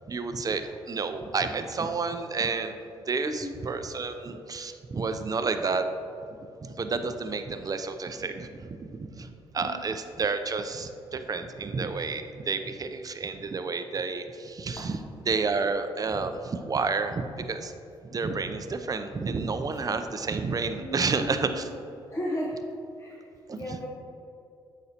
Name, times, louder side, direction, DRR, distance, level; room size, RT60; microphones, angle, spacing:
voice 1, 0.1-2.7 3.1-5.8 6.6-14.9 15.3-17.7 18.1-21.7 23.5-23.6, right 4 dB, 30° right, 8 dB, 0.5 m, -30 dB
voice 2, 9.6-9.9 20.8-21.7 22.1-22.6 23.0-23.9, equal, 25° left, -3 dB, 0.9 m, -35 dB
7.8 x 5.1 x 2.9 m, 2.7 s
hypercardioid pair, 50°, 12 cm